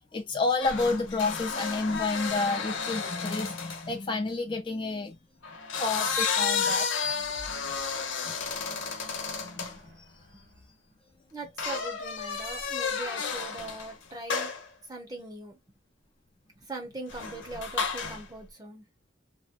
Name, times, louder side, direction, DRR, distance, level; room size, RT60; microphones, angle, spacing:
voice 1, 0.1-5.2 5.7-7.7 8.2-8.3 8.7-8.8 9.4-10.0 10.3-10.4, left 3 dB, 25° left, 0.5 m, -31 dB
sound 1, 0.6-3.9 5.4-9.8 11.6-13.9 14.3-14.7 17.1-18.3, left 5 dB, 85° left, 0.9 m, -32 dB
sound 2, 6.6-11.2, equal, 70° right, 1.3 m, -53 dB
voice 2, 11.3-14.5 14.9-15.6 16.6-18.9, right 2 dB, 20° right, 0.9 m, -41 dB
2.9 x 2.2 x 2.5 m
head